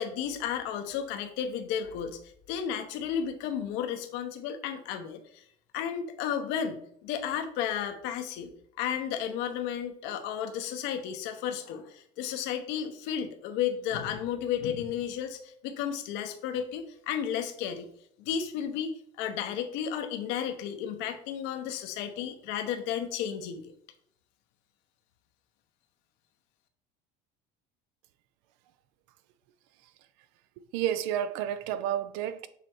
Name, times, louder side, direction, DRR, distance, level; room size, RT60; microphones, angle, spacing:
voice 1, 0.0-2.2 2.5-5.4 5.7-8.5 8.8-17.9 18.2-23.7, left 8 dB, 70° left, 0.9 m, -33 dB
voice 2, 30.7-32.5, right 10 dB, 75° right, 0.6 m, -30 dB
6.7 x 3.2 x 4.5 m
supercardioid pair, 115°, 19 cm